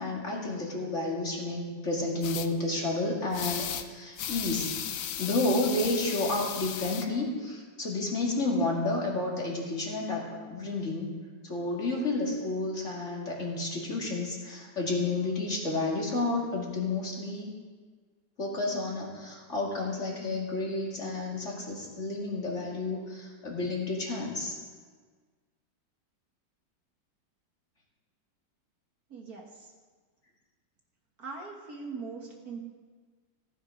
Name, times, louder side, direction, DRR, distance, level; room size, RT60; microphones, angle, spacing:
voice 1, 0.0-4.7 5.2-11.1 11.4-17.5 18.4-24.6, left 2 dB, 40° left, -3 dB, 2.7 m, -31 dB
sound 1, 2.2-2.5 3.3-3.9 4.2-7.0, left 9 dB, 60° left, 0.9 m, -35 dB
voice 2, 29.1-29.7 31.2-32.6, right 4 dB, 55° right, 0 dB, 1.8 m, -41 dB
15.5 x 9.8 x 5.1 m, 1.5 s
omnidirectional pair, 1.9 m